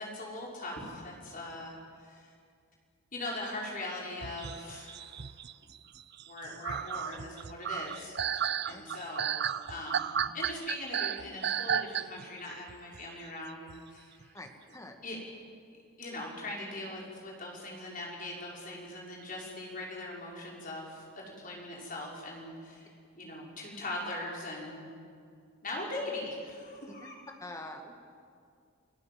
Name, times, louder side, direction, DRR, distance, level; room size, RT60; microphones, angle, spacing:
voice 1, 0.0-2.3 3.1-5.2 6.3-14.3 15.0-15.3 16.0-22.9 23.2-24.9 25.6-27.2, left 2 dB, 40° left, -2 dB, 5.6 m, -41 dB
sound 1, 4.2-12.4 12.7-13.1 13.7-13.8 14.2-14.5, right 8 dB, 50° right, 0.6 m, -34 dB
voice 2, 14.3-15.0 27.4-27.9, left 1 dB, 15° left, 3 dB, 2.1 m, -45 dB
29.0 x 18.0 x 7.7 m, 2.3 s
head